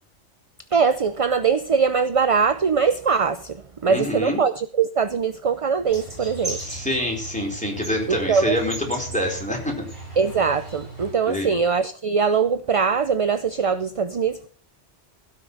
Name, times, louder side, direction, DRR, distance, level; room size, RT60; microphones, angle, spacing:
voice 1, 0.7-6.6 8.1-8.6 10.2-14.5, right 6 dB, 40° right, 0.6 m, -22 dB
voice 2, 3.9-4.4 6.4-9.9 11.3-11.6, left 1 dB, 5° left, 4.2 m, -26 dB
sound 1, 5.9-11.1, right 2 dB, 55° right, 6.5 m, -36 dB
16.5 x 6.1 x 6.6 m
omnidirectional pair, 1.2 m